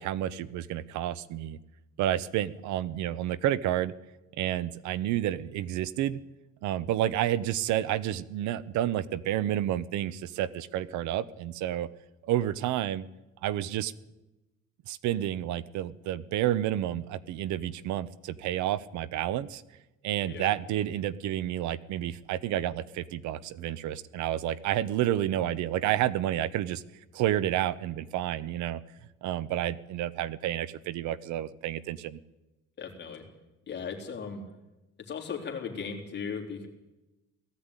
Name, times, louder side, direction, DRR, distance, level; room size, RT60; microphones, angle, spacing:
voice 1, 0.0-1.6 2.0-3.9 4.4-6.2 6.6-11.9 12.2-13.0 13.4-13.9 14.9-19.6 20.0-26.8 27.1-28.8 29.2-32.2, right 12 dB, 75° right, 18 dB, 0.9 m, -30 dB
voice 2, 32.8-33.2 33.7-34.4 35.1-36.7, left 6 dB, 35° left, 1 dB, 3.7 m, -37 dB
18.0 x 14.5 x 9.8 m, 1.0 s
cardioid pair, 170°, 30 cm